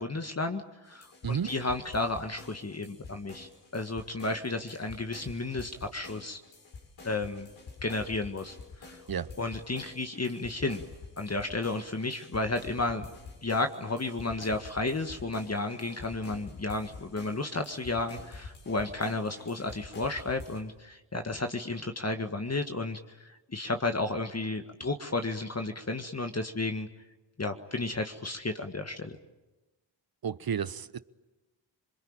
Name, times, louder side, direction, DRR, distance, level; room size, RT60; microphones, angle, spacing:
voice 1, 0.0-6.4 7.0-7.5 7.8-8.6 8.8-9.0 9.4-10.8 11.2-13.1 13.4-26.9 27.4-29.2, left 2 dB, 35° left, 1.9 m, -32 dB
sound 1, 0.9-20.6, left 3 dB, 75° left, 7.3 m, -48 dB
voice 2, 30.2-31.0, right 7 dB, 50° right, 1.0 m, -31 dB
27.5 x 22.0 x 9.0 m
cardioid pair, 45°, 46 cm